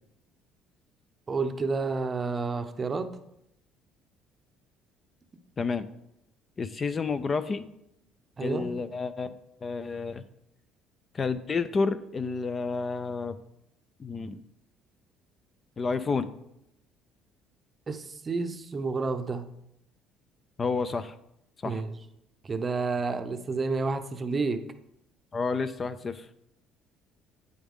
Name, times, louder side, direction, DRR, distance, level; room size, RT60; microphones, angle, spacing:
voice 1, 1.3-3.1 8.4-8.7 17.9-19.5 21.6-22.0 22.4-24.6, right 4 dB, 25° right, 8 dB, 0.6 m, -30 dB
voice 2, 5.6-5.9 6.6-7.7 8.4-10.2 11.1-13.4 14.0-14.4 15.8-16.3 20.6-21.2 21.6-21.8 25.3-26.3, left 4 dB, 30° left, 12 dB, 0.4 m, -30 dB
9.1 x 7.1 x 3.6 m, 0.81 s
cardioid pair, 130°, 0 cm